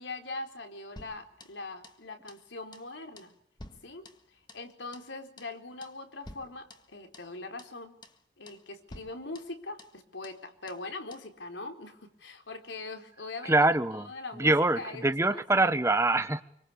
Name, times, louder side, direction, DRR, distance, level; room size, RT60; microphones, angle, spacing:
voice 1, 0.0-3.3 3.8-7.9 8.4-15.7, left 3 dB, 90° left, 5 dB, 4.2 m, -42 dB
sound 1, 1.0-2.0 2.3-2.5 2.7-2.9 3.2-4.7 4.9-5.1 5.4-5.6 5.8-6.0 6.2-7.3 7.6-7.8 8.0-8.2 8.5-8.6 8.9-10.0 10.2-10.4 10.7-10.9 11.1-11.3, left 1 dB, 25° left, 1.8 m, -51 dB
voice 2, 13.4-14.1 14.4-16.4, right 2 dB, 15° right, 11 dB, 1.2 m, -24 dB
26.0 x 24.5 x 8.6 m, 0.69 s
head